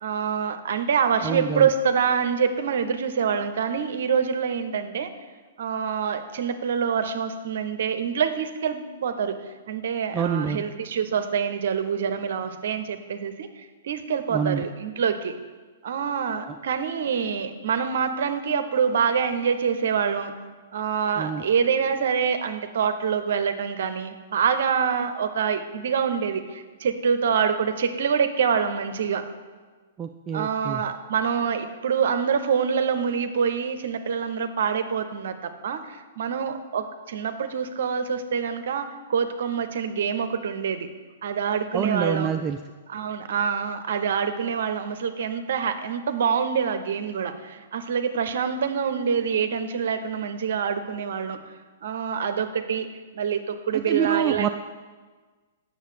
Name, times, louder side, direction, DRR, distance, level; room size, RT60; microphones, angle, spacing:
voice 1, 0.0-5.1 5.6-9.3 9.7-15.3 15.8-20.3 20.7-29.2 30.3-40.9 41.2-42.3 42.9-51.4 51.8-52.9 53.1-54.5, right 7 dB, 55° right, 9 dB, 0.7 m, -26 dB
voice 2, 1.2-1.7 10.1-10.6 14.3-14.6 16.5-16.6 21.2-21.4 30.0-30.8 41.7-42.6 53.7-54.5, right 8 dB, 20° right, 6 dB, 0.4 m, -26 dB
8.2 x 6.6 x 6.4 m, 1.4 s
figure-of-eight pair, 110°, 0 cm